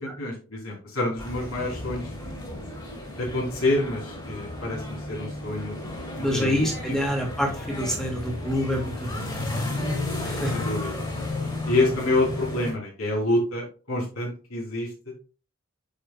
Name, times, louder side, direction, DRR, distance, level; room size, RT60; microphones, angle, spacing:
voice 1, 0.0-2.1 3.2-6.6 6.9-7.1 10.5-10.9 11.7-14.9, left 2 dB, 90° left, -3 dB, 3.4 m, -27 dB
sound 1, 1.2-12.7, left 2 dB, 20° left, 2.4 m, -33 dB
voice 2, 6.2-9.4 10.2-10.7, equal, 5° left, 0 dB, 1.7 m, -27 dB
9.7 x 4.8 x 2.3 m, 0.35 s
head